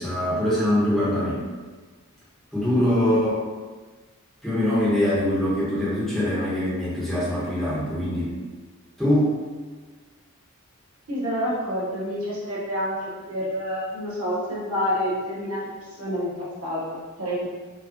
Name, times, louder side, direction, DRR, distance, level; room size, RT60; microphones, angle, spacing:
voice 1, 0.0-1.4 2.5-3.4 4.4-8.3 9.0-9.4, left 1 dB, ahead, -11 dB, 1.2 m, -23 dB
voice 2, 11.1-17.5, equal, 85° right, -8 dB, 1.3 m, -28 dB
4.4 x 2.5 x 2.9 m, 1.3 s
head